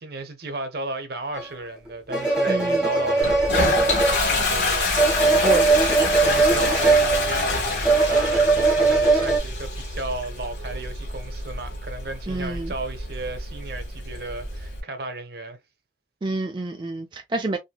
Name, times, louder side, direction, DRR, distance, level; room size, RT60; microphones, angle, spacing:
voice 1, 0.0-5.7 6.2-15.6, right 2 dB, 60° right, 0.7 m, -34 dB
Embellishments on Tar - Left most string pair, 1.3-1.4 2.1-9.4, right 3 dB, 5° right, 0.9 m, -20 dB
voice 2, 2.5-2.9 5.4-6.1 12.3-12.7 16.2-17.6, right 2 dB, 25° right, 0.3 m, -28 dB
Toilet flush, 3.2-14.8, left 3 dB, 65° left, 1.2 m, -27 dB
2.8 x 2.6 x 2.3 m
head